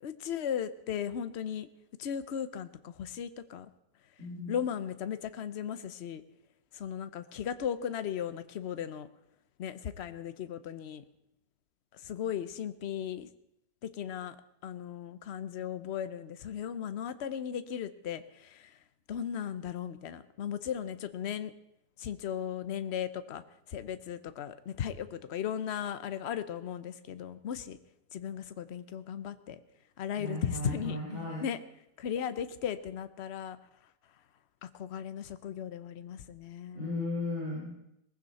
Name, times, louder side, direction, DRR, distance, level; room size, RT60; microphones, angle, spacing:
voice 1, 0.0-1.7 2.0-3.7 4.5-6.2 6.7-9.1 9.6-11.0 11.9-13.3 13.8-14.4 14.6-18.8 19.1-21.5 22.0-23.4 23.7-27.8 28.1-29.6 30.0-31.0 31.4-31.6 32.0-33.6 34.6-37.0, left 9 dB, 55° left, 12 dB, 0.8 m, -36 dB
voice 2, 4.2-4.6 30.2-31.4 36.7-37.7, left 2 dB, 40° right, -4 dB, 4.4 m, -35 dB
19.0 x 15.0 x 4.2 m, 0.80 s
omnidirectional pair, 1.9 m